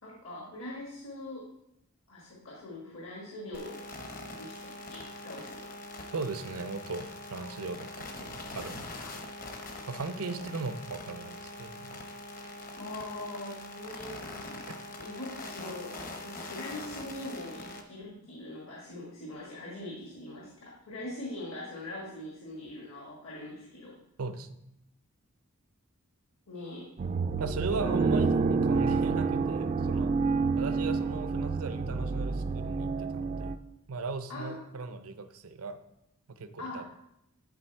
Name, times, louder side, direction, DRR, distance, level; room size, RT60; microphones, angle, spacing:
voice 1, 0.0-1.5 2.1-3.8 4.4-5.7 9.0-9.1 10.2-10.5 12.7-14.7 15.0-23.9 26.5-26.9 34.3-34.8 36.6-36.9, left 1 dB, 65° left, -3 dB, 1.5 m, -42 dB
sound 1, 3.5-17.8, left 2 dB, 40° left, 0.8 m, -43 dB
voice 2, 6.1-8.9 9.9-12.0 14.7-14.8 24.2-24.5 27.4-30.1 30.6-33.5 33.9-35.8 36.4-36.8, right 3 dB, 85° right, 10 dB, 0.6 m, -37 dB
sound 2, 27.0-33.6, right 4 dB, 35° right, 0.3 m, -28 dB
10.5 x 3.9 x 4.5 m, 0.80 s
head